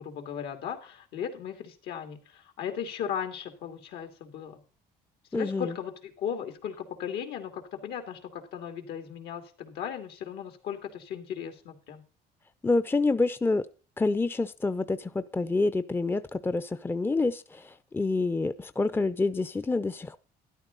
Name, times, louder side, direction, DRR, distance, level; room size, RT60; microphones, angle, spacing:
voice 1, 0.0-4.6 5.3-12.0, left 8 dB, 80° left, 2.6 m, -37 dB
voice 2, 5.3-5.7 12.6-13.7 14.0-20.2, left 3 dB, 15° left, 0.6 m, -27 dB
13.0 x 11.0 x 4.0 m
cardioid pair, 110°, 17 cm